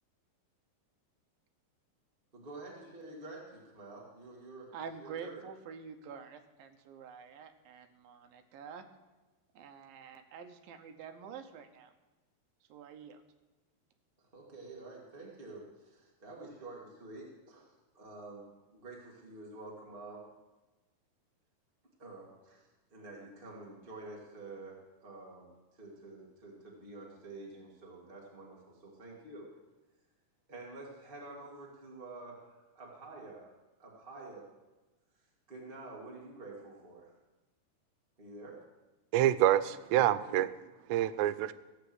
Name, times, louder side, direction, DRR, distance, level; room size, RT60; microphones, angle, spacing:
voice 1, 2.3-4.7 5.0-5.4 14.3-18.4 18.7-20.2 22.0-29.5 30.5-32.4 32.7-33.5 33.8-34.5 35.5-37.1 38.2-38.6 40.2-40.4, right 2 dB, 25° right, -3 dB, 1.1 m, -48 dB
voice 2, 4.7-8.8 9.6-11.9 12.7-13.2, right 6 dB, 70° right, 6 dB, 2.4 m, -47 dB
voice 3, 39.1-40.5 40.9-41.5, right 12 dB, 90° right, 14 dB, 2.8 m, -27 dB
15.0 x 8.1 x 7.9 m, 1.1 s
omnidirectional pair, 4.9 m